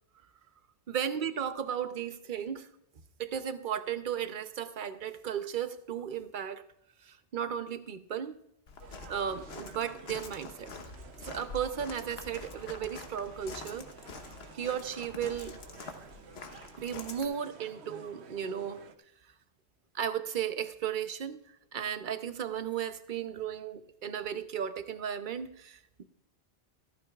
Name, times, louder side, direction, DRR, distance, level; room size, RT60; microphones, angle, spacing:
voice 1, 0.9-2.7 3.2-6.6 7.0-8.4 9.1-10.7 11.2-13.9 14.5-15.6 16.8-18.8 19.9-21.4 21.7-25.8, right 8 dB, 55° right, 11 dB, 0.9 m, -35 dB
Walk footsteps, 8.7-17.2, left 4 dB, 75° left, 1.3 m, -46 dB
sound 1, 8.8-18.9, right 7 dB, 85° right, 1.0 m, -52 dB
14.5 x 14.0 x 2.4 m, 0.74 s
omnidirectional pair, 1.1 m